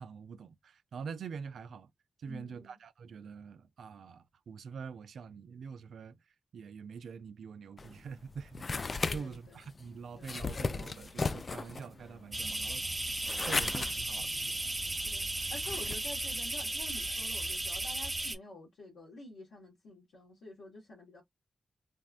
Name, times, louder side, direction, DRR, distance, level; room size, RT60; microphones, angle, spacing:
voice 1, 0.0-1.9 2.2-6.2 6.5-8.6 9.1-14.6, right 6 dB, 80° right, 0.3 m, -45 dB
voice 2, 2.3-2.8 9.0-9.6 10.2-10.4 15.0-21.2, left 2 dB, 90° left, 1.3 m, -49 dB
sound 1, 7.8-16.0, left 4 dB, 50° left, 0.3 m, -37 dB
sound 2, 12.3-18.4, right 2 dB, 25° right, 0.9 m, -35 dB
3.4 x 2.1 x 2.4 m
supercardioid pair, 40°, 0 cm